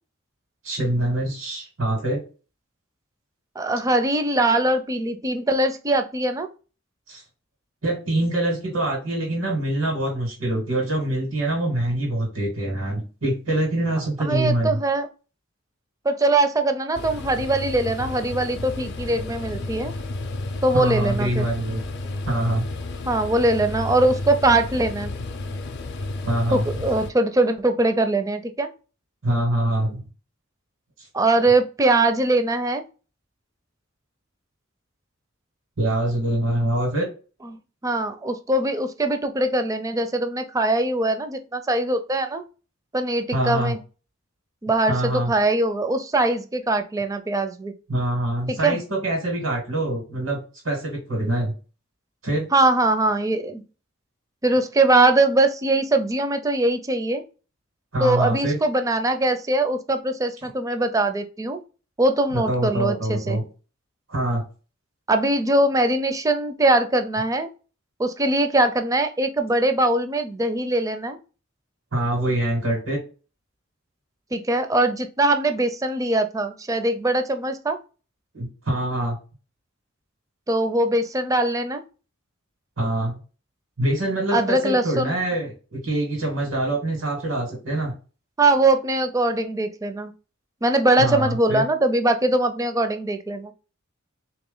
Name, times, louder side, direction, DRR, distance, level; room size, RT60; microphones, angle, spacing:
voice 1, 0.6-2.2 7.1-7.2 7.8-14.8 20.7-21.8 22.3-22.6 26.2-26.6 29.2-30.0 31.0-31.1 35.8-37.1 43.3-43.7 44.9-45.3 47.9-51.5 52.2-52.5 57.9-58.6 62.3-63.4 64.1-64.4 71.9-73.0 78.3-79.2 82.8-83.2 83.8-87.9 91.0-91.6, right 1 dB, 85° right, -1 dB, 1.8 m, -24 dB
voice 2, 3.6-6.5 14.2-15.1 16.0-19.9 20.6-21.4 23.1-25.1 26.5-28.7 31.1-32.8 37.4-42.4 42.9-43.8 44.6-47.7 48.5-48.8 52.5-53.6 54.4-57.2 58.0-61.6 62.0-63.4 65.1-67.5 68.0-71.2 74.3-77.8 80.5-81.8 84.3-85.1 88.4-90.1 90.6-93.5, right 2 dB, 15° right, 8 dB, 0.4 m, -22 dB
sound 1, 16.9-27.1, left 2 dB, 55° left, 0.5 m, -32 dB
3.7 x 3.0 x 3.8 m, 0.35 s
head